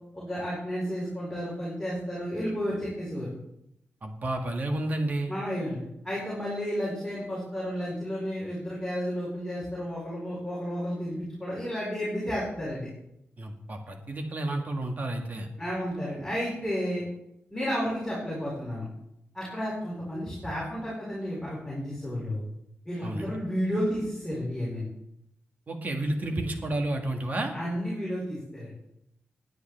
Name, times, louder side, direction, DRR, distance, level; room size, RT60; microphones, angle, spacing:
voice 1, 0.1-3.3 5.3-5.8 6.0-12.9 15.6-17.0 17.5-18.9 19.3-22.4 22.8-24.9 27.5-28.7, equal, 5° left, -8 dB, 4.5 m, -32 dB
voice 2, 4.0-5.3 13.4-15.5 23.0-23.3 25.7-27.5, right 1 dB, 40° right, 3 dB, 1.9 m, -31 dB
19.5 x 9.7 x 3.4 m, 0.80 s
wide cardioid pair, 140°, 4 cm